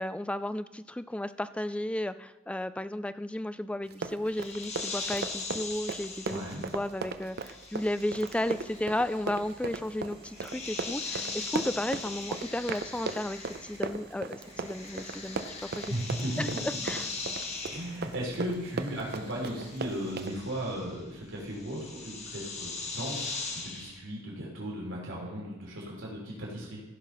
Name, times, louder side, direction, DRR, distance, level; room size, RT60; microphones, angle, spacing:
voice 1, 0.0-15.9 16.4-16.5 16.8-17.1, left 1 dB, 5° left, 13 dB, 0.3 m, -34 dB
Run, 3.9-20.3, right 4 dB, 55° right, 0.6 m, -37 dB
sound 1, 4.3-14.0 14.3-24.0, left 3 dB, 35° left, 1.6 m, -41 dB
voice 2, 6.3-6.6 15.8-16.8 17.7-26.8, equal, 90° right, -4 dB, 3.2 m, -36 dB
sound 2, 8.1-20.1, right 1 dB, 25° right, 1.7 m, -54 dB
15.5 x 5.9 x 5.4 m, 1.1 s
head